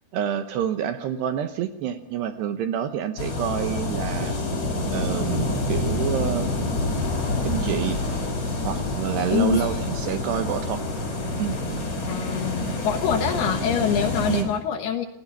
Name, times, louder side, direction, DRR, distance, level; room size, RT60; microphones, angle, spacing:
voice 1, 0.1-4.4 4.9-6.5 6.9-7.0 7.4-8.0 8.6-10.8 11.4-11.6 14.3-14.5, right 9 dB, 75° right, 8 dB, 2.7 m, -28 dB
sound 1, 3.2-14.4, left 2 dB, 30° left, 5.1 m, -27 dB
voice 2, 9.3-9.7 12.1-15.1, left 8 dB, 70° left, 6 dB, 2.7 m, -25 dB
28.5 x 17.0 x 5.6 m, 0.85 s
omnidirectional pair, 5.7 m